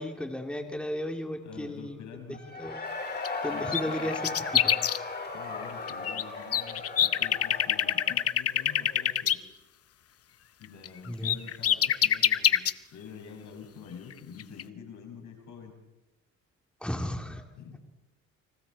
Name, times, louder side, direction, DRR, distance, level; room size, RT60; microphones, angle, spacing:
voice 1, 0.0-2.0 2.6-2.8 3.4-4.2 4.5-4.8 11.1-11.4 16.8-17.4, left 1 dB, 5° left, 3 dB, 2.9 m, -34 dB
voice 2, 1.4-2.4 3.4-4.2 5.3-9.4 10.6-15.8 17.6-17.8, left 6 dB, 75° left, 3 dB, 6.1 m, -47 dB
Cheering / Crowd, 2.3-9.0, left 3 dB, 35° left, 4.6 m, -37 dB
sound 1, 3.0-3.3 3.5-5.0 5.6-6.2 6.5-9.4 10.8-10.9 11.2-12.7 14.1-14.2 14.4-14.6, left 10 dB, 50° left, 0.8 m, -25 dB
29.5 x 25.5 x 4.3 m, 1.0 s
cardioid pair, 90°, 30 cm